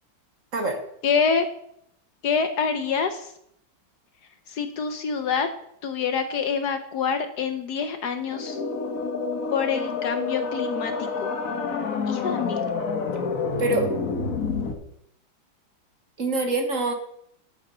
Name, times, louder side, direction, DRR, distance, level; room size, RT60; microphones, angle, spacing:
voice 1, 1.0-1.5 2.2-3.3 4.5-5.5 5.8-8.6 9.5-11.3 12.1-12.6, left 6 dB, 65° left, 8 dB, 1.2 m, -26 dB
sound 1, 8.2-14.7, left 4 dB, 50° left, 1.6 m, -28 dB
voice 2, 13.6-13.9 16.2-16.9, right 2 dB, 45° right, 4 dB, 1.6 m, -24 dB
12.0 x 7.2 x 5.5 m, 0.73 s
omnidirectional pair, 2.1 m